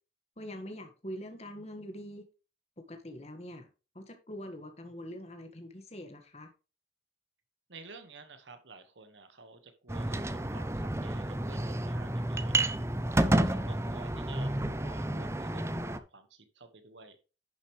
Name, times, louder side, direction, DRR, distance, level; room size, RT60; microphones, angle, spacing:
voice 1, 0.4-2.2 2.8-3.7 3.9-6.5, equal, 35° left, 1.6 m, -44 dB
voice 2, 7.7-12.8 13.3-17.2, right 3 dB, 80° right, 1.5 m, -52 dB
sound 1, 9.9-16.0, right 1 dB, 15° right, 0.6 m, -30 dB
11.0 x 6.8 x 3.2 m
head